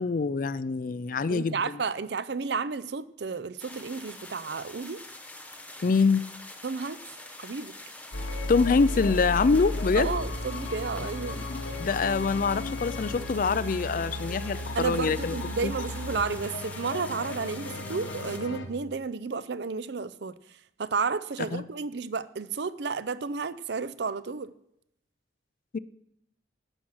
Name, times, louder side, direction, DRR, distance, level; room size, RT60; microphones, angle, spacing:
voice 1, 0.0-1.6 5.8-6.2 8.5-10.2 11.8-15.4 15.6-15.7 21.5-21.6 25.7-25.8, left 4 dB, 45° left, 17 dB, 0.4 m, -25 dB
voice 2, 1.3-5.0 6.6-7.0 7.4-7.7 9.9-11.4 14.7-20.3 20.8-24.5, right 5 dB, 60° right, 15 dB, 0.5 m, -32 dB
sound 1, 3.6-18.4, left 2 dB, 10° left, 1.1 m, -45 dB
sound 2, 8.1-18.7, left 1 dB, 85° left, 1.3 m, -34 dB
11.5 x 7.4 x 6.4 m, 0.77 s
head